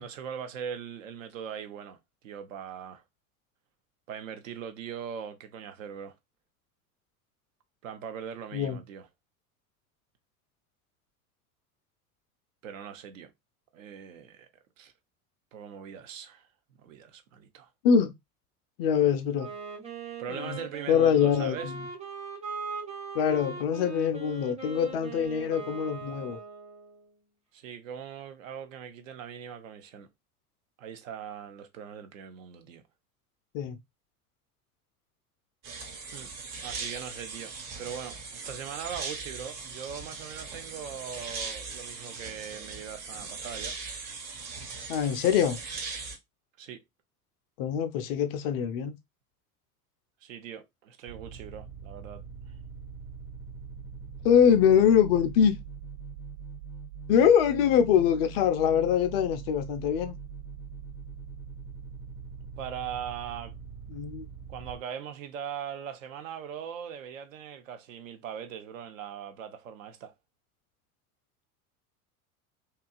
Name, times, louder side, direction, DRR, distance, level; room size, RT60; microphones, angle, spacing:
voice 1, 0.0-2.0 2.2-3.0 4.1-6.1 7.8-9.1 12.6-13.3 13.7-14.5 14.8-14.9 15.5-16.5 16.8-17.7 20.2-21.7 27.5-30.1 30.8-32.8 36.1-36.3 36.6-37.5 37.8-43.8 46.6-46.8 50.2-52.2 62.6-63.5 64.5-70.1, right 8 dB, 60° right, 0.7 m, -40 dB
voice 2, 18.8-19.5 20.3-20.6 20.9-21.8 23.1-26.4 33.5-33.8 44.9-45.6 47.6-49.0 54.2-55.5 57.1-60.2 63.9-64.2, left 8 dB, 45° left, 0.4 m, -24 dB
Wind instrument woodwind instrument, 19.3-27.1, right 5 dB, 15° right, 0.8 m, -40 dB
sound 1, 35.6-46.2, right 4 dB, 35° right, 1.2 m, -39 dB
sound 2, 51.1-64.8, right 5 dB, 80° right, 1.3 m, -43 dB
2.8 x 2.3 x 2.3 m
figure-of-eight pair, 75°, 45 cm